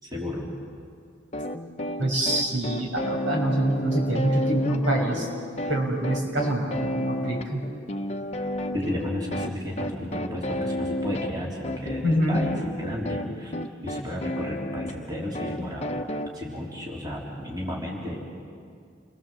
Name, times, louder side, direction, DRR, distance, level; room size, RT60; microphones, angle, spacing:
voice 1, 0.0-0.5 8.7-13.5 13.8-15.9 16.3-18.2, left 1 dB, 20° right, -3 dB, 3.6 m, -33 dB
sound 1, 1.3-16.3, left 1 dB, 35° left, 0.9 m, -32 dB
voice 2, 2.0-5.3 5.7-7.6 12.0-12.4, right 1 dB, 75° right, 1 dB, 5.8 m, -25 dB
29.0 x 22.5 x 7.6 m, 2.3 s
head